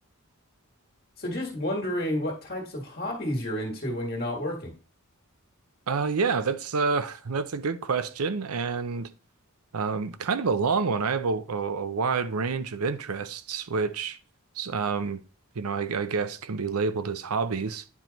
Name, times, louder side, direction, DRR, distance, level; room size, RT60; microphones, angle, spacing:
voice 1, 1.2-4.7, left 1 dB, 45° left, 1.6 m, -30 dB
voice 2, 5.9-9.1 9.7-14.2 14.6-15.2 15.6-17.8, right 5 dB, 85° right, 0.6 m, -28 dB
9.6 x 4.5 x 4.0 m
head